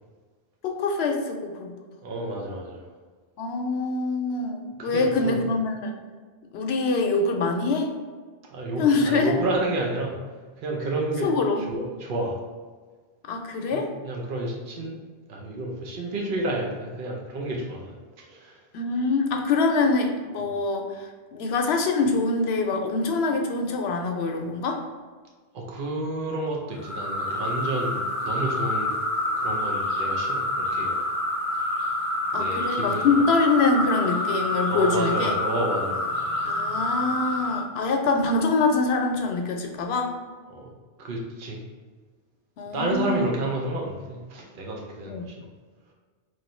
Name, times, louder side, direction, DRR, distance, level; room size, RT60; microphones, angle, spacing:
voice 1, 0.6-1.7 3.4-5.9 6.5-7.9 8.8-9.3 11.2-11.7 13.3-13.9 18.7-21.0 21.3-24.8 32.3-35.3 36.4-40.1 42.6-43.3 45.1-45.3, left 3 dB, 80° left, 3 dB, 0.8 m, -24 dB
voice 2, 2.0-2.8 4.8-5.5 8.5-10.2 10.6-11.3 11.6-12.4 13.7-18.6 25.5-28.9 29.4-31.0 32.3-33.2 34.7-36.3 40.5-40.7 41.0-41.6 42.7-45.4, right 2 dB, 60° right, -1 dB, 0.8 m, -30 dB
sound 1, 26.8-37.6, left 1 dB, ahead, 1.2 m, -27 dB
3.2 x 2.6 x 4.2 m, 1.5 s
omnidirectional pair, 1.0 m